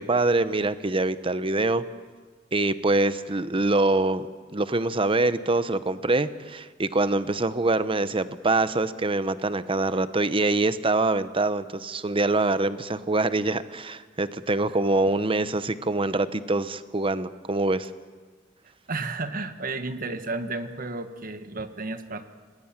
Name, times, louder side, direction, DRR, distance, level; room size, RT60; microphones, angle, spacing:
voice 1, 0.0-1.8 2.5-17.9, right 2 dB, 30° right, 13 dB, 0.9 m, -24 dB
voice 2, 18.9-22.3, right 3 dB, 45° right, 9 dB, 1.6 m, -32 dB
26.0 x 20.0 x 9.0 m, 1.5 s
head